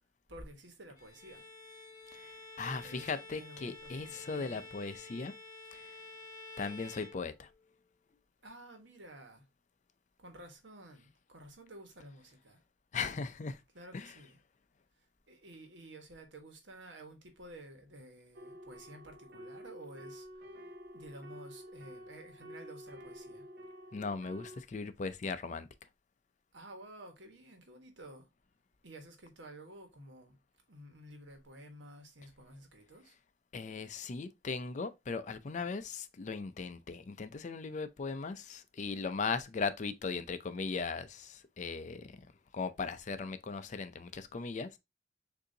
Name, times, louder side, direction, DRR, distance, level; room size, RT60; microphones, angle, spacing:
voice 1, 0.3-1.4 2.6-4.7 8.4-9.5 10.2-12.6 13.7-14.4 15.3-20.3 20.9-23.5 26.5-28.3 28.8-30.4 30.7-33.2, right 1 dB, 85° right, 1.2 m, -52 dB
Bowed string instrument, 1.0-7.7, left 2 dB, 20° left, 1.4 m, -50 dB
voice 2, 2.6-5.3 6.6-7.5 12.9-13.6 13.9-14.1 23.9-25.7 33.5-42.1 42.5-44.7, left 4 dB, 40° left, 0.4 m, -38 dB
sound 1, 18.3-24.6, equal, 55° right, 0.7 m, -50 dB
6.5 x 2.7 x 2.7 m
head